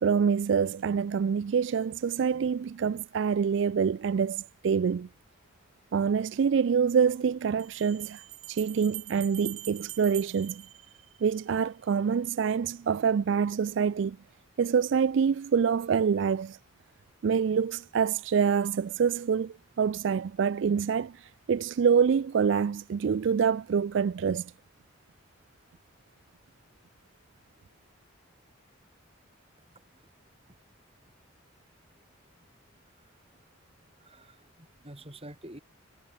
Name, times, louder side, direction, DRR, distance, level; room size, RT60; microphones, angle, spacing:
voice 1, 0.0-5.1 5.9-8.2 8.5-10.6 11.2-14.2 14.6-16.6 17.2-24.5, right 6 dB, 60° right, 0.3 m, -26 dB
Bell, 7.6-11.5, right 16 dB, 90° right, 5.6 m, -44 dB
voice 2, 29.7-30.1 32.4-32.5 33.0-33.1 34.0-35.6, right 1 dB, 30° right, 4.1 m, -49 dB
head